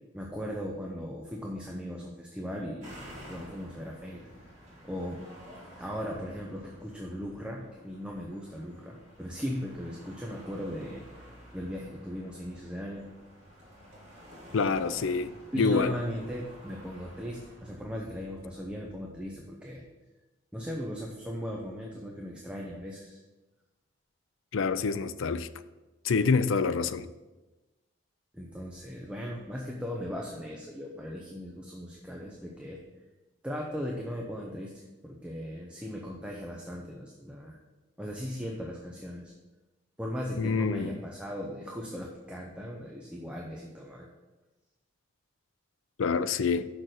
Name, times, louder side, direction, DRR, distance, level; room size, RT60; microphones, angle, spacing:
voice 1, 0.1-4.3 4.8-5.2 5.8-11.0 11.5-13.1 15.5-19.8 20.5-23.2 28.3-32.8 33.4-37.6 38.0-39.3 40.0-44.1, equal, 5° right, 0.8 m, -38 dB
sound 1, 2.8-17.8, equal, 35° right, 3.1 m, -51 dB
voice 2, 14.5-16.0 24.5-25.5 26.0-27.1 40.4-41.0 46.0-46.7, left 4 dB, 75° left, 0.4 m, -27 dB
6.5 x 6.1 x 6.4 m
head